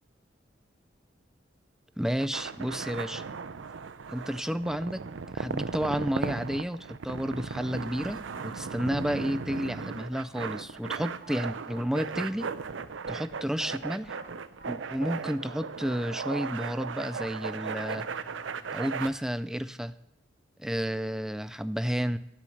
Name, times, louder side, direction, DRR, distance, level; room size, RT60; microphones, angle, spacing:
voice 1, 2.0-3.2 4.1-5.0 5.3-6.8 7.0-12.5 13.1-14.2 14.7-18.0 18.7-20.0 20.6-22.2, equal, 5° right, 13 dB, 0.4 m, -31 dB
sound 1, 2.1-19.1, right 5 dB, 90° right, 0.6 m, -37 dB
sound 2, 8.3-10.4 11.2-13.6 14.1-16.2 17.0-19.4, right 2 dB, 55° right, 2.1 m, -54 dB
12.0 x 6.2 x 7.9 m, 0.82 s
head